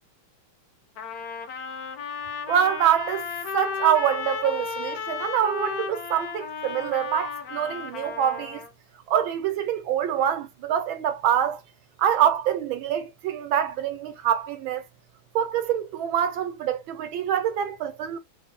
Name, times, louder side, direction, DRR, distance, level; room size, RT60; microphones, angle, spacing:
Trumpet, 1.0-8.7, left 6 dB, 60° left, 1.1 m, -34 dB
voice 1, 2.5-3.3 3.5-8.6 9.1-11.6 12.0-14.8 15.4-18.2, right 9 dB, 80° right, 1.6 m, -25 dB
4.5 x 2.3 x 3.8 m
omnidirectional pair, 2.2 m